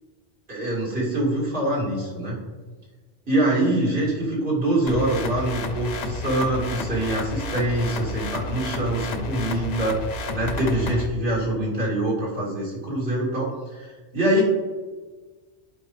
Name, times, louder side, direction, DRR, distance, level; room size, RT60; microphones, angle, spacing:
voice 1, 0.5-2.4 3.3-14.4, right 1 dB, 70° right, -6 dB, 2.5 m, -24 dB
sound 1, 4.9-11.1, left 2 dB, 50° left, 0.6 m, -31 dB
13.0 x 4.9 x 3.2 m, 1.4 s
omnidirectional pair, 1.1 m